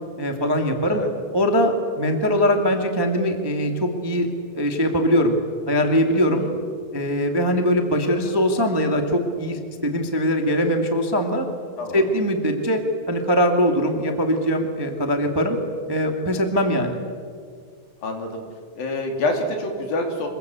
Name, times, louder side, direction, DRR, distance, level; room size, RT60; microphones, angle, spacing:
voice 1, 0.2-1.0 1.3-4.3 4.5-5.3 5.7-6.4 6.9-11.4 11.9-12.8 13.1-15.6 15.9-17.0, equal, 10° right, 4 dB, 1.2 m, -21 dB
voice 2, 6.3-6.6 11.8-12.0 18.0-18.4 18.8-20.3, left 2 dB, 75° left, 3 dB, 4.9 m, -27 dB
25.5 x 22.5 x 8.2 m, 2.1 s
omnidirectional pair, 4.2 m